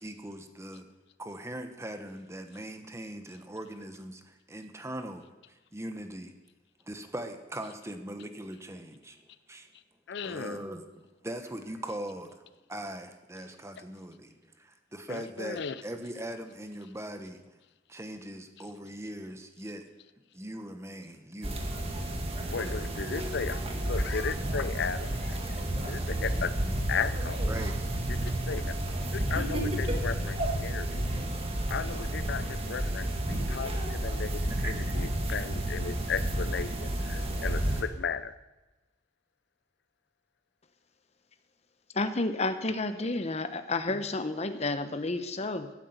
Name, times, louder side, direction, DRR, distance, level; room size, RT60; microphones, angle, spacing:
voice 1, 0.0-0.9 1.2-5.3 5.7-6.3 6.8-9.7 10.2-10.8 11.2-12.4 12.7-17.6 17.9-19.9 20.3-21.6 22.6-22.9 27.5-27.7 34.5-35.0, right 1 dB, 15° right, 7 dB, 1.2 m, -40 dB
voice 2, 10.1-10.6 15.1-15.8 22.5-25.6 25.9-26.5 26.9-27.5 28.1-28.7 29.1-31.0 31.7-38.3, left 6 dB, 60° left, 15 dB, 0.5 m, -35 dB
sound 1, 21.4-37.8, right 1 dB, 30° right, 1.9 m, -31 dB
voice 3, 41.9-45.7, left 2 dB, 35° left, 10 dB, 0.9 m, -31 dB
12.0 x 10.0 x 8.0 m, 1.1 s
head